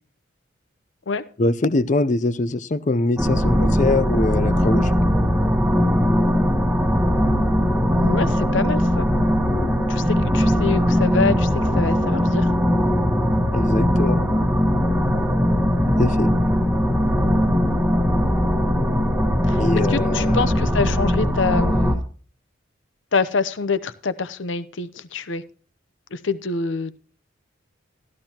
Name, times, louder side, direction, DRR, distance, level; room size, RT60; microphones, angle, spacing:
voice 1, 1.4-4.9 13.5-14.2 16.0-16.3 19.6-20.4, left 2 dB, 40° left, 0.5 m, -23 dB
sound 1, 3.2-22.0, equal, 5° right, 1.2 m, -20 dB
voice 2, 8.0-9.1 9.9-12.5 19.5-22.0 23.1-25.4 26.1-27.0, left 4 dB, 70° left, 0.7 m, -26 dB
13.5 x 12.0 x 2.9 m
head